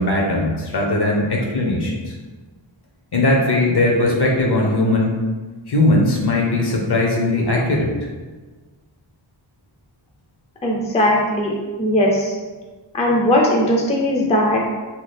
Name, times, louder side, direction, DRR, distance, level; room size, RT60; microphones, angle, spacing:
voice 1, 0.0-2.1 3.1-5.2 5.7-7.9, left 2 dB, 55° left, -1 dB, 0.7 m, -19 dB
voice 2, 10.6-11.5 11.8-12.4 12.9-14.7, left 1 dB, 15° left, -2 dB, 0.4 m, -18 dB
2.8 x 2.3 x 3.3 m, 1.3 s
wide cardioid pair, 90°, 47 cm